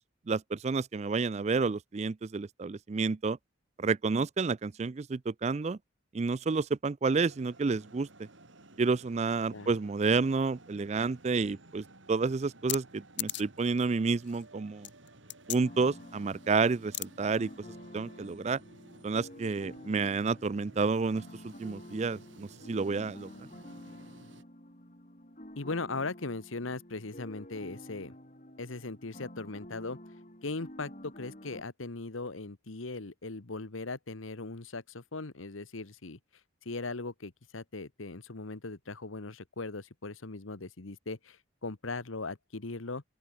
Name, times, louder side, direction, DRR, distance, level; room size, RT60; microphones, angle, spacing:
voice 1, 0.3-3.4 3.8-5.8 6.1-8.3 8.8-14.9 15.5-17.5 17.9-18.6 19.0-23.3, right 4 dB, 35° right, 0.4 m, -30 dB
sound 1, 7.1-24.4, right 2 dB, 70° right, 3.7 m, -56 dB
sound 2, 12.7-12.8 13.2-13.6 14.1-14.4 14.8-15.6 16.9-17.1, left 15 dB, 60° left, 2.1 m, -35 dB
sound 3, 15.6-31.6, left 1 dB, 40° left, 5.9 m, -50 dB
voice 2, 25.6-28.1 28.6-30.0 30.4-36.2 36.6-43.0, left 3 dB, 90° left, 1.4 m, -39 dB
open air
head